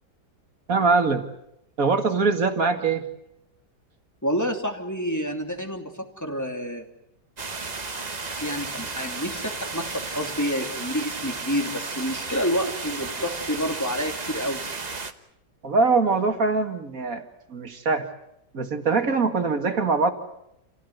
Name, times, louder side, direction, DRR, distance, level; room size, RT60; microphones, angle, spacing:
voice 1, 0.7-1.2 1.8-3.1 15.6-17.2 17.5-18.1 18.5-20.1, right 4 dB, 50° right, 6 dB, 2.4 m, -22 dB
voice 2, 4.2-6.9 8.3-14.6, equal, 10° left, 3 dB, 2.7 m, -29 dB
sound 1, 7.4-15.1, right 4 dB, 25° right, 1.2 m, -33 dB
28.5 x 16.5 x 9.4 m, 0.83 s
omnidirectional pair, 1.9 m